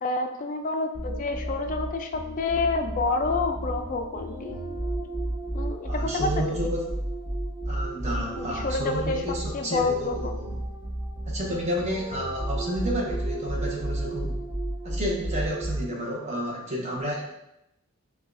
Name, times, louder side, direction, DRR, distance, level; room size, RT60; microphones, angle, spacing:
voice 1, 0.0-4.6 5.5-6.7 8.4-10.3, left 3 dB, 35° left, 5 dB, 0.3 m, -29 dB
sound 1, 0.9-16.1, right 1 dB, 10° right, 1.1 m, -32 dB
voice 2, 5.8-6.8 7.7-10.5 11.2-14.4 14.8-17.2, equal, 30° right, -2 dB, 0.9 m, -31 dB
6.8 x 2.3 x 2.5 m, 0.85 s
head